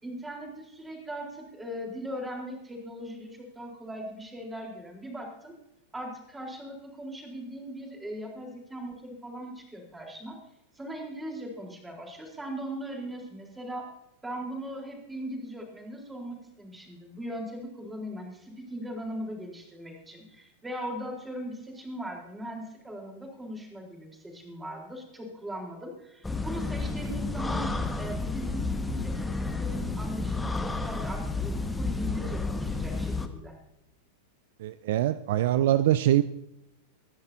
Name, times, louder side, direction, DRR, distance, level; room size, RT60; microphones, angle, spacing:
voice 1, 0.0-5.6 5.9-10.4 10.8-13.9 14.2-33.6, equal, 10° right, 0 dB, 4.0 m, -39 dB
sound 1, 26.2-33.3, left 3 dB, 5° left, 1.2 m, -31 dB
voice 2, 34.6-36.2, right 13 dB, 55° right, 15 dB, 0.5 m, -23 dB
25.0 x 11.0 x 2.8 m, 0.84 s
figure-of-eight pair, 90°, 0 cm